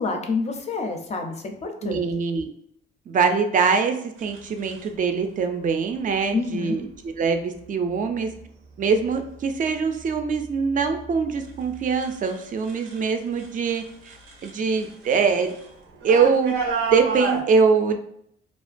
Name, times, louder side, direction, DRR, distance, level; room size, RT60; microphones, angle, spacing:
voice 1, 0.0-2.0 6.3-6.8, left 4 dB, 35° left, 4 dB, 0.4 m, -28 dB
voice 2, 1.8-2.5 3.1-8.3 8.8-14.2 14.4-15.5 16.0-16.6 16.9-18.0, right 5 dB, 40° right, 6 dB, 0.4 m, -23 dB
sound 1, 4.2-4.9 6.0-6.4 6.9-7.4 7.9-8.4 8.8-13.1 13.3-17.4, right 4 dB, 90° right, 0.6 m, -33 dB
2.4 x 2.2 x 2.5 m, 0.71 s
cardioid pair, 90°, 20 cm